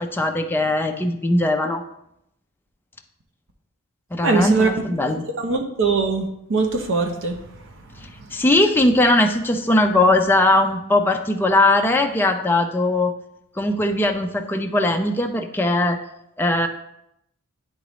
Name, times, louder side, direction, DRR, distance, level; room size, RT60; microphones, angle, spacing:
voice 1, 0.0-1.8 4.1-5.2 8.0-13.1 13.6-16.0 16.4-16.7, left 2 dB, 10° left, 3 dB, 0.5 m, -19 dB
voice 2, 4.2-4.7 5.3-8.4, right 4 dB, 60° right, 4 dB, 0.8 m, -23 dB
10.5 x 3.9 x 3.1 m, 0.80 s
head